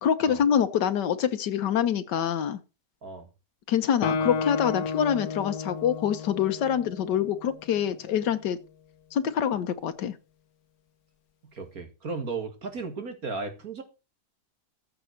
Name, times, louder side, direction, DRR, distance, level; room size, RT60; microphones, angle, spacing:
voice 1, 0.0-2.6 3.7-8.6 9.1-10.1, left 8 dB, 85° left, 1.6 m, -25 dB
Guitar, 4.0-7.7, left 5 dB, 65° left, 1.3 m, -32 dB
voice 2, 11.5-13.8, right 4 dB, 55° right, 2.2 m, -35 dB
14.5 x 5.5 x 6.5 m
omnidirectional pair, 1.8 m